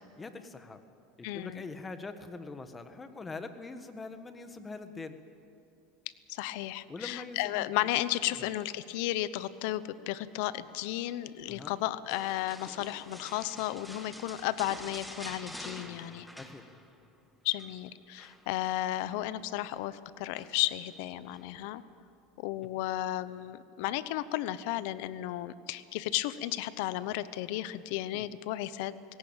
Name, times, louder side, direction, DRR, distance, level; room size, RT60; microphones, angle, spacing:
voice 1, 0.2-0.8 1.2-5.2 6.9-7.7 8.0-8.5 11.5-11.7 16.4-16.6 28.1-28.3, left 3 dB, 15° left, 9 dB, 1.4 m, -43 dB
voice 2, 1.2-1.6 6.3-16.3 17.4-21.8 22.4-28.9, left 15 dB, 70° left, 15 dB, 0.8 m, -34 dB
sound 1, 12.1-17.1 17.4-17.7 18.2-19.2 20.3-20.8 21.3-21.5, equal, ahead, 1.7 m, -47 dB
19.0 x 17.0 x 9.0 m, 2.5 s
supercardioid pair, 125°, 0 cm